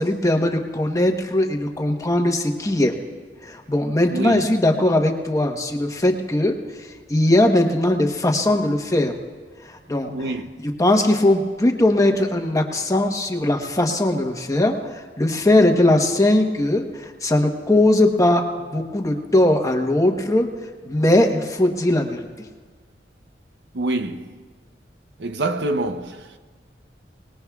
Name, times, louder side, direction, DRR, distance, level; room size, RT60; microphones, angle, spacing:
voice 1, 0.0-2.9 3.4-6.6 7.1-9.1 9.7-10.1 10.8-14.8 15.2-20.5 20.9-22.2, left 1 dB, 20° left, 1.0 m, -19 dB
voice 2, 4.1-4.5 10.1-10.5 23.7-24.3 25.2-26.4, right 2 dB, 70° right, 0.6 m, -26 dB
25.0 x 19.5 x 2.4 m
head